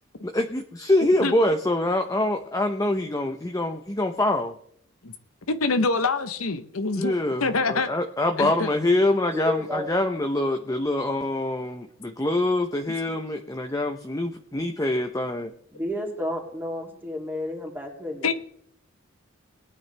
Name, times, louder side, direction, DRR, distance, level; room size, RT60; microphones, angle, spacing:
voice 1, 0.2-4.5 7.0-15.5, left 1 dB, 15° left, 5 dB, 0.7 m, -25 dB
voice 2, 1.0-1.3 5.0-5.1 5.5-7.1 7.4-7.9 8.4-8.7 18.2-18.3, left 3 dB, 90° left, 9 dB, 0.9 m, -25 dB
voice 3, 9.3-10.0 14.8-14.9 15.7-18.3, left 1 dB, 10° right, 0 dB, 2.8 m, -31 dB
20.5 x 9.4 x 3.4 m, 0.63 s
head